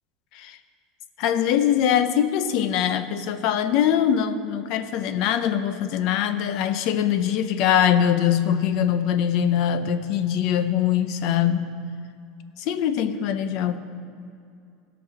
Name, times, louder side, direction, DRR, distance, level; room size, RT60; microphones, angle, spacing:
voice 1, 1.2-11.7 12.6-13.8, left 9 dB, 45° left, 11 dB, 0.6 m, -22 dB
16.0 x 6.0 x 4.9 m, 2.4 s
supercardioid pair, 170°, 0 cm